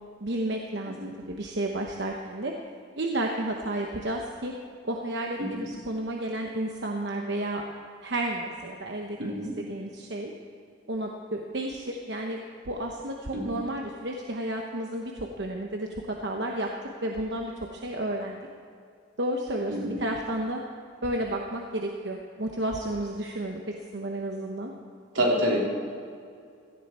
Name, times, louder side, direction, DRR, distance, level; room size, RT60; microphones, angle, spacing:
voice 1, 0.2-2.5 3.0-4.5 4.8-7.6 8.0-10.3 10.9-16.7 17.0-18.4 19.2-20.6 21.0-23.6 23.9-24.7, right 1 dB, 60° right, 1 dB, 1.0 m, -32 dB
voice 2, 9.2-9.5 13.3-13.6 19.7-20.0 25.1-25.7, equal, 80° right, -2 dB, 3.2 m, -27 dB
17.0 x 15.0 x 4.4 m, 2.3 s
head